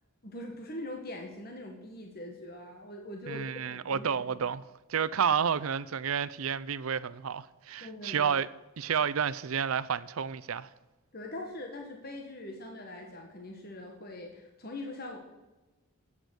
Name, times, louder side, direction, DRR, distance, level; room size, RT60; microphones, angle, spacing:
voice 1, 0.2-4.5 7.8-8.3 11.1-15.2, left 1 dB, 45° left, 1.5 m, -42 dB
voice 2, 3.3-4.6 4.9-8.5 8.8-10.7, right 7 dB, 75° right, 0.5 m, -30 dB
13.0 x 8.3 x 6.4 m
head